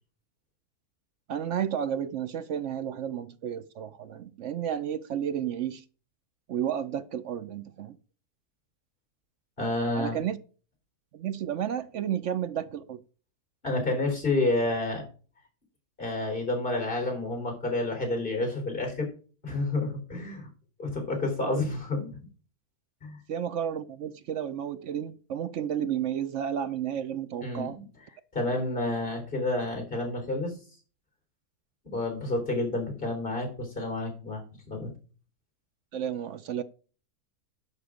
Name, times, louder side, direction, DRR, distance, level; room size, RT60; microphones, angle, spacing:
voice 1, 1.3-5.8 6.5-8.0 10.0-10.4 11.1-13.0 21.4-21.5 23.3-27.8 35.9-36.6, right 9 dB, 65° right, 0.8 m, -32 dB
voice 2, 9.6-10.2 13.6-15.0 16.0-19.1 19.4-20.5 20.8-22.2 23.0-23.2 27.4-27.9 28.3-30.6 31.9-34.4 34.7-34.9, left 2 dB, 30° left, 3.9 m, -29 dB
11.0 x 6.7 x 5.0 m
omnidirectional pair, 1.7 m